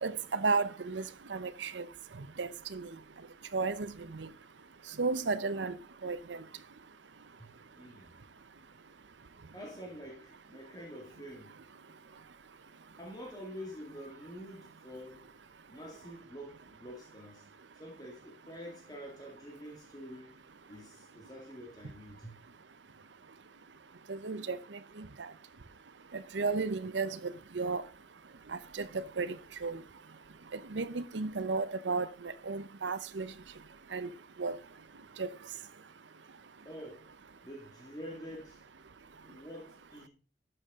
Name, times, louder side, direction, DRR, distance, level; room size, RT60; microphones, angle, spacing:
voice 1, 0.0-1.0 1.3-1.9 2.4-2.9 3.5-4.3 5.0-5.8 6.0-6.4 24.1-24.6 25.0-25.1 26.3-27.8 28.7-29.3 29.6-29.8 30.7-33.3 33.9-34.1 34.4-34.6 35.2-35.3, right 4 dB, 90° right, 0.8 m, -33 dB
voice 2, 7.7-8.1 9.5-11.5 13.0-15.2 15.7-17.4 17.7-20.4 20.7-22.3 36.6-37.1 37.4-38.6 39.2-40.1, equal, 20° left, 2.1 m, -47 dB
12.0 x 7.3 x 3.7 m
head